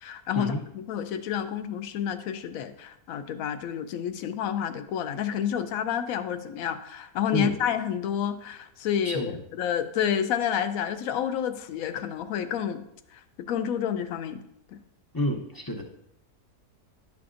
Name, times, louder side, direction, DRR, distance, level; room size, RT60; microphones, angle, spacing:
voice 1, 0.0-12.8 13.1-14.4 14.7-14.8, left 9 dB, 70° left, 10 dB, 0.9 m, -29 dB
voice 2, 9.0-9.4 15.1-15.8, left 1 dB, 35° left, 0 dB, 0.3 m, -29 dB
11.0 x 5.9 x 2.5 m, 0.77 s
omnidirectional pair, 1.6 m